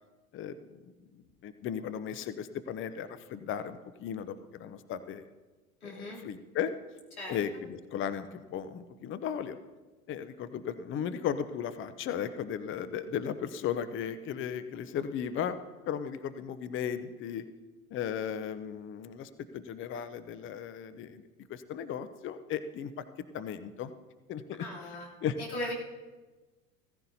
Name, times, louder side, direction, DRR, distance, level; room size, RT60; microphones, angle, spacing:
voice 1, 1.4-5.2 5.8-6.7 7.3-9.6 10.1-17.4 17.9-21.2 21.5-22.9 23.3-23.9 24.3-24.6 25.2-25.4, left 8 dB, 30° left, 12 dB, 0.7 m, -36 dB
voice 2, 5.8-6.2 7.2-7.4 24.6-25.1 25.4-25.7, left 1 dB, 85° left, -4 dB, 3.3 m, -38 dB
16.0 x 15.0 x 2.8 m, 1.2 s
hypercardioid pair, 80°, 42 cm